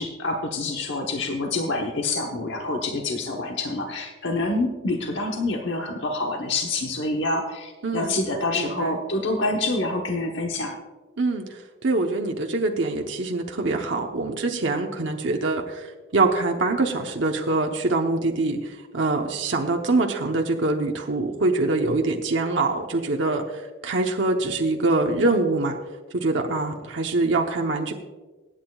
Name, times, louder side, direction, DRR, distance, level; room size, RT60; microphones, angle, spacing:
voice 1, 0.0-10.7, left 2 dB, 65° left, 2 dB, 1.1 m, -27 dB
voice 2, 7.8-8.2 8.5-8.9 11.2-25.8 26.1-27.9, right 2 dB, 70° right, 2 dB, 0.9 m, -24 dB
23.5 x 9.0 x 2.4 m, 1.3 s
head